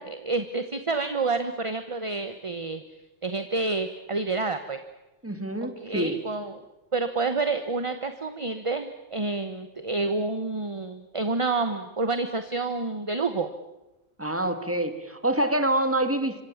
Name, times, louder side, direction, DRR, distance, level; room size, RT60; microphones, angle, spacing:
voice 1, 0.0-2.8 3.2-4.8 5.8-6.6 6.9-13.5, right 3 dB, 30° right, 9 dB, 1.2 m, -28 dB
voice 2, 5.2-6.2 14.2-16.4, right 1 dB, 10° right, 8 dB, 2.1 m, -26 dB
27.0 x 25.0 x 7.3 m, 1.0 s
omnidirectional pair, 1.2 m